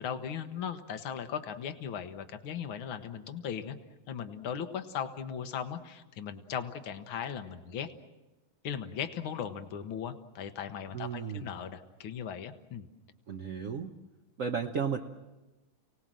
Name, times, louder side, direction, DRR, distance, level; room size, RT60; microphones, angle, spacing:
voice 1, 0.0-3.8 4.1-7.9 8.6-12.9, left 8 dB, 80° left, 9 dB, 2.0 m, -38 dB
voice 2, 10.9-11.5 13.3-13.9 14.4-15.0, right 6 dB, 50° right, 3 dB, 1.1 m, -34 dB
29.5 x 18.5 x 7.6 m, 1.1 s
omnidirectional pair, 2.3 m